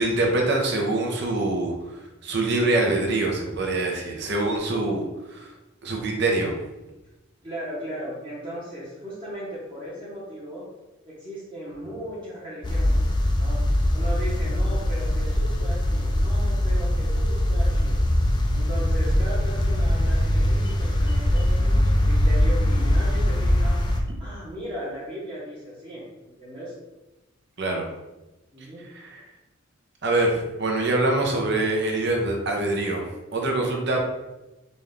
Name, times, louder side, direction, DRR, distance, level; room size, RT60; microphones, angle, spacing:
voice 1, 0.0-5.0 5.3-5.5 5.8-6.5 27.6-27.9 28.9-29.2 30.0-34.0, right 2 dB, 60° right, 1 dB, 0.8 m, -24 dB
voice 2, 7.4-10.7 11.1-13.0 13.4-13.6 13.9-18.0 18.5-23.8 24.2-26.7 28.5-28.8, equal, 25° right, -9 dB, 1.0 m, -37 dB
sound 1, 12.6-24.0, left 1 dB, 25° left, 0.4 m, -22 dB
4.0 x 2.4 x 3.5 m, 1.0 s
head